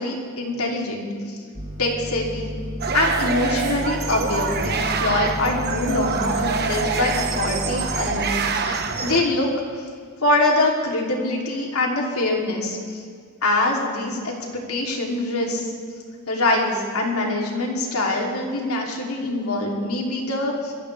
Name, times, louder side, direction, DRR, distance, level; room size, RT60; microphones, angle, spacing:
voice 1, 0.0-1.4 1.8-2.5 2.9-9.5 10.2-12.8 13.4-15.7 16.3-20.7, left 2 dB, 90° left, -1 dB, 3.0 m, -24 dB
sound 1, 1.5-8.1, equal, 35° right, 2.5 m, -32 dB
sound 2, 2.8-9.2, right 4 dB, 50° right, 1.2 m, -26 dB
26.5 x 15.5 x 3.4 m, 2.1 s
head